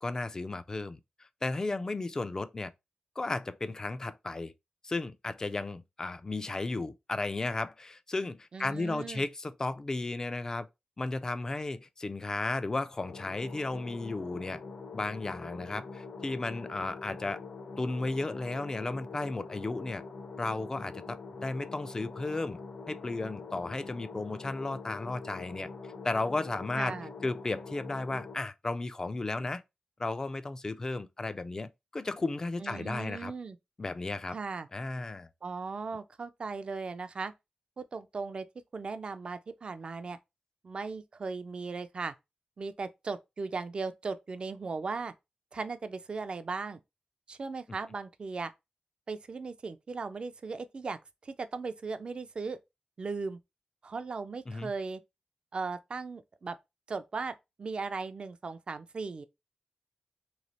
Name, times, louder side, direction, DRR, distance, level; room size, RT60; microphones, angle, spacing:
voice 1, 0.0-2.7 3.2-4.5 4.8-10.7 11.0-14.6 14.9-17.4 17.8-20.0 20.4-22.6 22.9-25.7 26.0-27.0 27.2-29.6 30.0-33.3 33.8-34.4 34.7-35.3 54.5-54.7, left 2 dB, 25° left, 0.3 m, -34 dB
voice 2, 8.5-9.3 26.7-27.1 32.6-33.6 34.3-34.7 35.4-37.3 37.8-38.5 38.7-40.2 40.6-42.1 42.6-45.1 45.5-46.8 47.3-48.5 49.1-52.6 53.0-53.4 53.8-55.0 55.5-56.6 56.9-59.2, right 4 dB, 45° right, 0.4 m, -37 dB
sound 1, 13.0-28.4, left 4 dB, 70° left, 0.8 m, -44 dB
3.1 x 2.9 x 4.0 m
wide cardioid pair, 170°, 2 cm